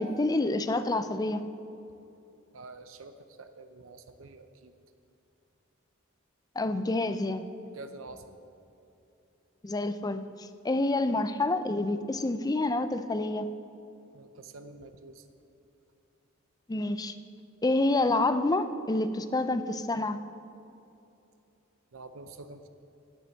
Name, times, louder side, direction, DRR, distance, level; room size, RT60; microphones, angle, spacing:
voice 1, 0.0-1.4 6.6-7.5 9.6-13.5 16.7-17.1 17.6-20.2, left 2 dB, 20° left, 11 dB, 0.4 m, -28 dB
voice 2, 2.5-4.7 7.7-8.2 14.1-15.3 21.9-22.7, right 3 dB, 65° right, 8 dB, 0.6 m, -47 dB
9.8 x 8.0 x 7.7 m, 2.7 s
head